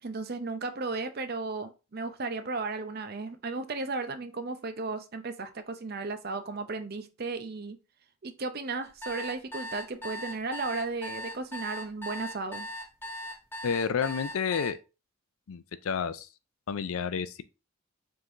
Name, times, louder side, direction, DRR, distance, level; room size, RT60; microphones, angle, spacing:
voice 1, 0.0-7.8 8.2-12.7, right 3 dB, 45° right, 0.6 m, -35 dB
sound 1, 8.8-14.7, left 1 dB, 10° left, 0.7 m, -39 dB
voice 2, 13.6-14.8 15.5-16.3 16.7-17.4, left 6 dB, 80° left, 0.4 m, -30 dB
4.6 x 3.7 x 2.6 m
head